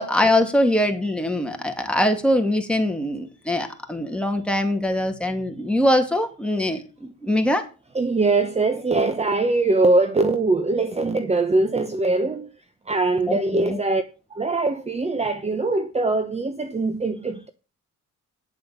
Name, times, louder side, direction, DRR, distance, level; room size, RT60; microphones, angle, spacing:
voice 1, 0.0-7.6 13.3-13.8, left 1 dB, 5° left, 2.5 m, -22 dB
voice 2, 7.9-12.5 12.9-14.0 14.3-17.5, right 3 dB, 20° right, 1.1 m, -22 dB
9.5 x 7.7 x 6.9 m
cardioid pair, 90°, 30 cm